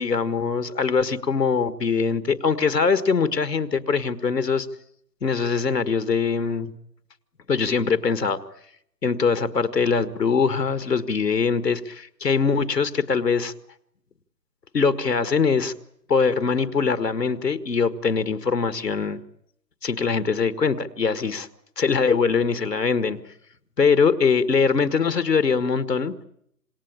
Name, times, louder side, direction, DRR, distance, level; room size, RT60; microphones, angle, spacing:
voice 1, 0.0-4.7 5.2-6.7 7.5-8.4 9.0-13.5 14.7-15.7 16.1-19.2 19.8-21.5 21.8-23.2 23.8-26.1, left 5 dB, 80° left, 12 dB, 1.9 m, -22 dB
27.5 x 20.0 x 8.8 m, 0.73 s
figure-of-eight pair, 155°, 48 cm